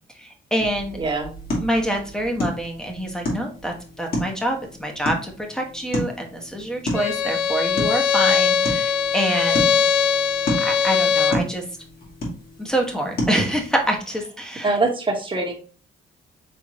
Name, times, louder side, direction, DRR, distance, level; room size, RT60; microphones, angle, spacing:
voice 1, 0.2-1.0 1.6-9.8 10.6-11.6 12.6-14.8, right 1 dB, 5° left, 2 dB, 1.1 m, -26 dB
sound 1, 0.6-14.0, left 1 dB, 50° left, 2.0 m, -32 dB
voice 2, 1.0-1.3 14.6-15.5, right 3 dB, 25° right, 0 dB, 1.3 m, -23 dB
Bowed string instrument, 6.9-11.5, left 7 dB, 80° left, 0.6 m, -21 dB
4.4 x 3.4 x 3.0 m, 0.38 s
cardioid pair, 90°, 20 cm